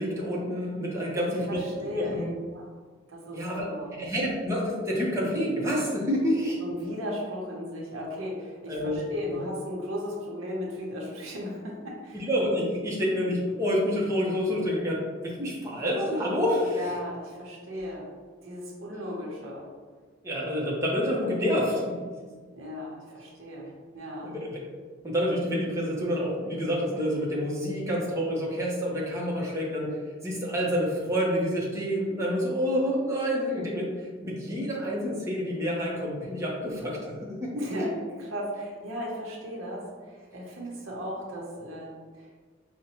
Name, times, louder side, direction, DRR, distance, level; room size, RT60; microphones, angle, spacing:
voice 1, 0.0-1.6 2.0-2.3 3.3-3.6 3.9-6.6 8.7-9.0 9.3-9.4 12.1-16.9 20.2-22.0 24.2-24.6 25.0-30.0 30.2-37.7, equal, 15° right, -5 dB, 0.7 m, -28 dB
voice 2, 1.1-2.3 2.5-2.7 3.1-4.0 5.6-5.8 6.6-12.3 16.7-18.1 18.4-19.7 21.2-21.3 22.5-24.3 37.6-42.3, left 1 dB, 80° right, -2 dB, 0.8 m, -36 dB
5.0 x 2.1 x 2.9 m, 1.5 s
head